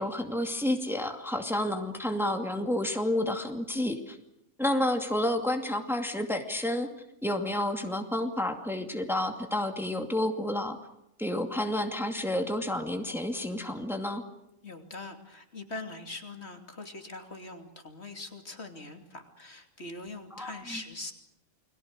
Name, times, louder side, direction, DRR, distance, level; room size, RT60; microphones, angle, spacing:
voice 1, 0.0-4.2 4.6-6.9 7.2-10.8 11.2-14.2 20.3-20.8, left 1 dB, ahead, 5 dB, 2.4 m, -30 dB
voice 2, 14.6-21.1, left 2 dB, 55° left, 5 dB, 3.2 m, -42 dB
30.0 x 22.5 x 6.6 m, 0.83 s
omnidirectional pair, 1.4 m